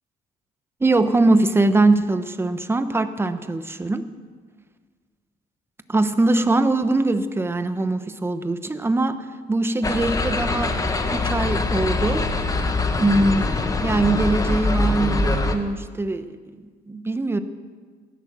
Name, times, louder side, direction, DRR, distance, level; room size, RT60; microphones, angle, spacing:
voice 1, 0.8-4.1 5.9-10.8 11.1-12.2 13.0-13.5 13.8-16.4 16.9-17.4, right 2 dB, 15° right, 10 dB, 0.9 m, -22 dB
sound 1, 9.8-15.5, left 2 dB, 20° left, 1.3 m, -23 dB
16.0 x 11.0 x 6.4 m, 1.5 s
cardioid pair, 110°, 17 cm